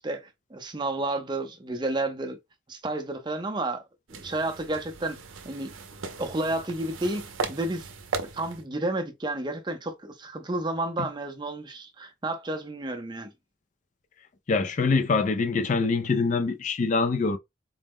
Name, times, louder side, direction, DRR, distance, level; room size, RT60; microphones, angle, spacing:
voice 1, 0.0-2.4 2.7-3.8 4.1-5.2 5.4-5.7 6.2-7.2 7.5-7.9 8.2-13.3, right 2 dB, 25° right, 0.5 m, -31 dB
sound 1, 4.1-8.7, right 4 dB, 90° right, 0.6 m, -37 dB
voice 2, 14.5-17.4, left 4 dB, 40° left, 0.3 m, -24 dB
4.0 x 2.0 x 3.5 m
head